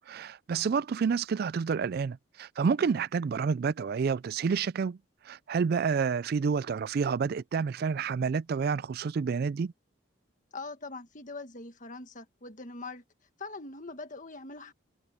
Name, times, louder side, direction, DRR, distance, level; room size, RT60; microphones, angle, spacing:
voice 1, 0.1-5.0 5.2-9.7, right 5 dB, 50° right, 0.3 m, -29 dB
voice 2, 10.5-13.0 13.4-14.7, left 3 dB, 40° left, 1.7 m, -42 dB
open air
head